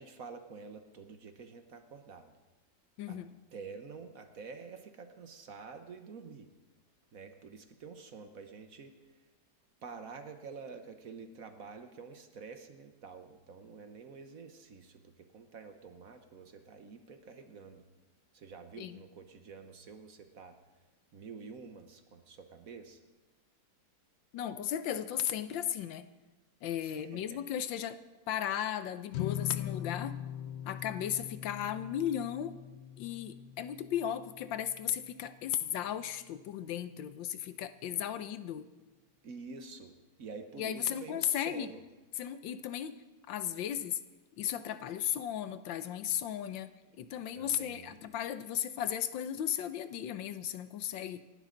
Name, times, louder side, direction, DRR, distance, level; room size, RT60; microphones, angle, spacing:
voice 1, 0.0-2.3 3.1-3.2 3.5-6.5 7.1-9.3 9.8-17.8 18.3-20.6 21.1-23.0 26.8-27.4 39.2-41.8 46.9-47.0 47.3-48.0, right 5 dB, 55° right, 7 dB, 1.3 m, -48 dB
voice 2, 3.0-3.3 18.8-19.0 24.3-26.1 26.6-28.0 28.3-30.2 30.6-32.6 33.0-38.7 40.6-41.7 42.2-43.0 43.3-44.0 44.4-46.7 47.0-51.2, left 10 dB, 80° left, 12 dB, 1.5 m, -35 dB
sound 1, 29.1-35.6, left 11 dB, 65° left, 1.0 m, -41 dB
27.0 x 12.0 x 3.9 m, 1.2 s
omnidirectional pair, 2.0 m